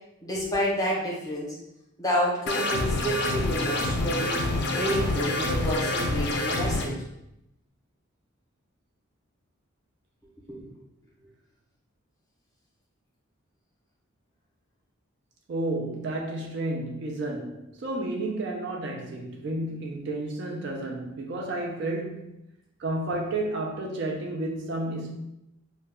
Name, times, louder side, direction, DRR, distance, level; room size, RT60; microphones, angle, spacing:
voice 1, 0.2-1.5 2.0-4.4 4.7-7.0 10.5-10.6, equal, 15° left, 0.7 m, -29 dB
sound 1, 2.5-6.9, left 2 dB, 50° left, 0.3 m, -27 dB
voice 2, 15.5-22.4 22.8-25.2, right 2 dB, 55° right, 0.3 m, -31 dB
2.2 x 2.1 x 3.3 m
head